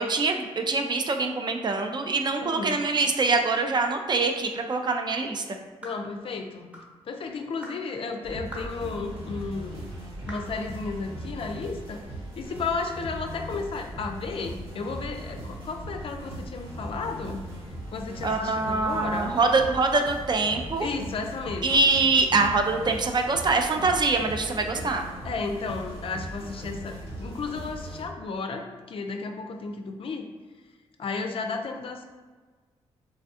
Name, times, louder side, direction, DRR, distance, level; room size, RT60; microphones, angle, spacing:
voice 1, 0.0-5.6 18.2-20.9 21.6-25.0, right 3 dB, 40° right, 4 dB, 0.4 m, -24 dB
voice 2, 2.4-2.8 5.8-6.7 7.1-9.8 10.3-12.0 12.4-17.4 17.9-19.4 20.8-21.8 25.2-30.3 31.0-32.0, left 4 dB, 50° left, 4 dB, 0.4 m, -33 dB
sound 1, 5.8-6.1 6.7-6.9 7.6-7.8 8.5-8.8 9.4-9.5 10.3-10.5, equal, 10° right, 0.9 m, -41 dB
sound 2, 8.2-28.0, right 1 dB, 55° right, 1.2 m, -39 dB
3.3 x 2.3 x 2.6 m, 1.4 s
supercardioid pair, 60°, 12 cm